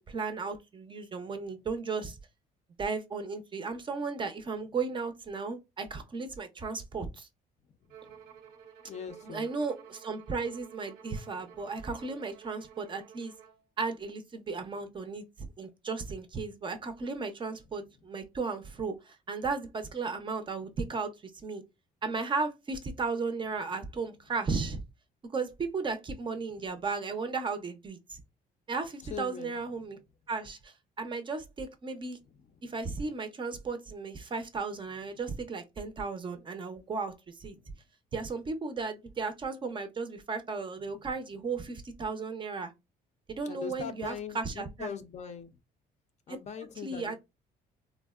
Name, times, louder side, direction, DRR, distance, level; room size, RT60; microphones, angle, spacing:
voice 1, 0.1-2.2 2.8-7.3 9.2-13.3 13.8-21.1 21.4-21.6 22.0-24.8 25.3-28.2 28.7-30.0 30.3-32.2 32.6-37.1 37.4-37.5 38.1-42.7 43.3-44.9 46.8-47.2, right 4 dB, 30° right, 0.5 m, -35 dB
Bowed string instrument, 7.9-13.6, right 8 dB, 85° right, 0.7 m, -52 dB
voice 2, 8.8-9.5 11.5-11.6 26.7-26.8 29.0-29.9 32.3-32.8 37.5-37.8 40.8-41.1 43.4-45.6 46.3-47.2, left 7 dB, 40° left, 0.4 m, -42 dB
3.5 x 2.0 x 2.3 m
cardioid pair, 110°, 17 cm